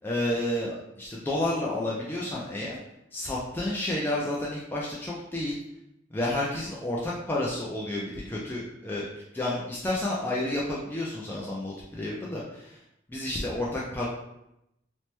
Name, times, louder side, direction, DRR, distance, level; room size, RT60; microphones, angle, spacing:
voice 1, 0.0-2.8 3.1-5.6 6.1-9.1 9.3-12.8 13.1-14.1, left 1 dB, 10° left, -5 dB, 0.4 m, -30 dB
2.9 x 2.1 x 3.1 m, 0.84 s
head